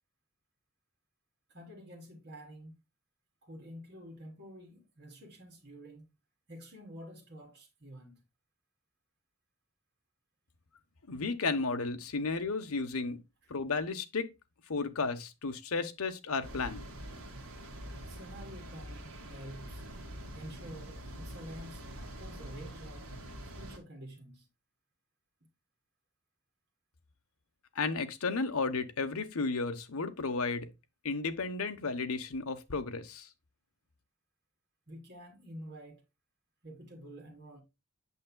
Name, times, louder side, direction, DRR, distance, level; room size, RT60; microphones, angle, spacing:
voice 1, 1.5-2.8 3.4-6.1 6.5-8.2 18.1-19.8 20.3-23.1 23.5-24.5 34.9-36.0 36.6-37.6, equal, 50° right, 3.4 m, -49 dB
voice 2, 11.1-13.2 13.5-14.3 14.7-16.8 27.7-30.7 31.0-33.3, left 4 dB, 80° left, 1.0 m, -33 dB
sound 1, 16.4-23.8, equal, 70° right, 2.1 m, -45 dB
8.4 x 6.6 x 2.2 m
head